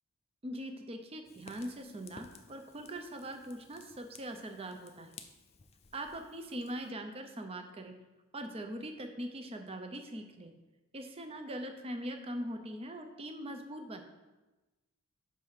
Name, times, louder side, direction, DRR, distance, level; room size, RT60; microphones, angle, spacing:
voice 1, 0.4-5.2 5.9-8.0 8.3-10.5 10.9-14.0, right 1 dB, 25° right, 6 dB, 0.6 m, -41 dB
Fire, 1.2-6.9, left 5 dB, 30° left, 0.4 m, -56 dB
5.6 x 4.8 x 5.6 m, 1.1 s
head